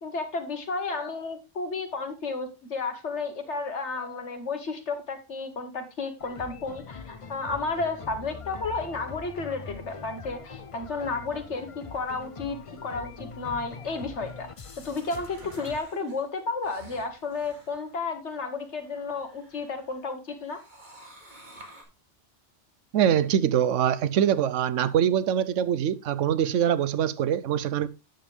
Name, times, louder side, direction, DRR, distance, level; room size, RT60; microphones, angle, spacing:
voice 1, 0.0-14.5 14.8-20.6, left 3 dB, 70° left, 1.8 m, -32 dB
sound 1, 6.2-15.8, left 5 dB, 35° left, 0.6 m, -42 dB
sound 2, 13.7-20.0 20.4-21.8, right 1 dB, 40° right, 2.3 m, -53 dB
voice 2, 22.9-27.9, right 9 dB, 90° right, 1.0 m, -24 dB
9.1 x 6.8 x 3.5 m
omnidirectional pair, 1.2 m